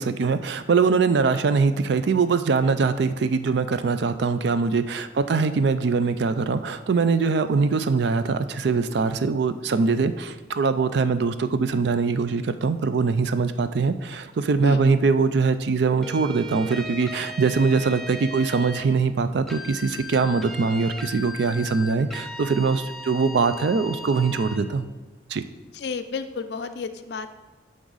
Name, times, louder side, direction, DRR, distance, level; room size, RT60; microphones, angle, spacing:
voice 1, 0.0-24.9 25.3-25.4, right 4 dB, 65° right, 11 dB, 0.4 m, -22 dB
voice 2, 14.6-14.9 25.7-27.3, left 4 dB, 60° left, 10 dB, 0.4 m, -31 dB
sound 1, 16.0-18.9 19.5-24.6, equal, ahead, 0.4 m, -37 dB
11.0 x 3.7 x 4.0 m, 1.3 s
head